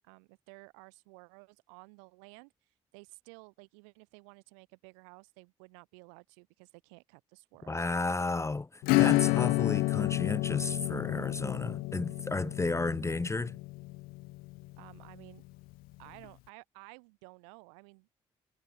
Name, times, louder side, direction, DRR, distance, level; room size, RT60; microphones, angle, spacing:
voice 1, 0.0-2.5 2.9-8.0 14.8-15.4 16.0-18.1, right 38 dB, 85° right, 6.8 m, -54 dB
voice 2, 7.7-13.6, left 3 dB, 20° left, 0.5 m, -33 dB
Acoustic guitar / Strum, 8.8-15.1, left 22 dB, 80° left, 0.9 m, -30 dB
hypercardioid pair, 45°, 15 cm